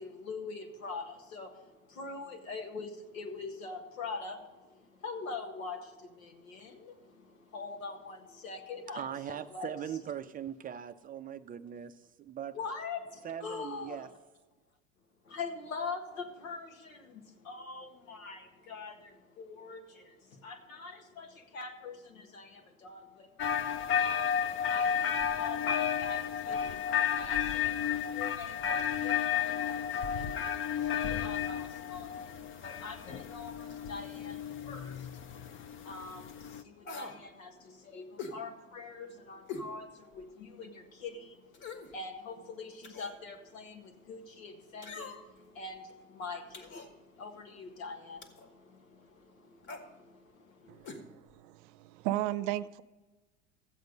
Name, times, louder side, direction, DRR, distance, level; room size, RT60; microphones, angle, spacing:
voice 1, 0.0-9.7 12.5-14.0 15.3-51.0, left 4 dB, 85° left, 4 dB, 1.7 m, -44 dB
voice 2, 8.9-12.6 13.2-14.1, right 9 dB, 25° right, 10 dB, 0.4 m, -40 dB
sound 1, 23.4-36.6, left 8 dB, 30° left, 0.7 m, -32 dB
sound 2, 36.8-37.2 38.2-38.4 39.5-39.7 40.2-40.3 41.5-41.9 42.8-43.2 44.8-45.4 46.5-46.9 48.2-48.5 49.6-49.9 50.8-51.0 51.3-51.4, left 4 dB, 50° left, 1.9 m, -43 dB
voice 3, 50.7-52.8, right 14 dB, 60° right, 15 dB, 0.7 m, -35 dB
14.0 x 7.9 x 5.2 m, 1.2 s
hypercardioid pair, 85°, 40 cm